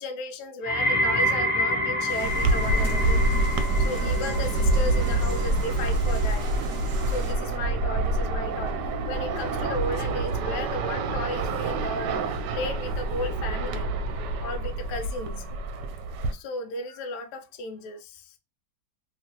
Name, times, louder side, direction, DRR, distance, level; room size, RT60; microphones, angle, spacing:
voice 1, 0.0-3.2 3.8-6.4 7.1-8.7 9.1-12.2 12.5-13.9 14.4-15.4 16.3-18.2, left 1 dB, 80° left, 1.1 m, -34 dB
sound 1, 0.6-11.8 12.1-12.6 13.3-13.4, left 1 dB, 25° left, 1.1 m, -30 dB
sound 2, 2.1-7.3, right 3 dB, 50° right, 1.0 m, -40 dB
sound 3, 2.2-16.3, right 2 dB, 85° right, 1.2 m, -27 dB
2.9 x 2.9 x 2.8 m
omnidirectional pair, 1.8 m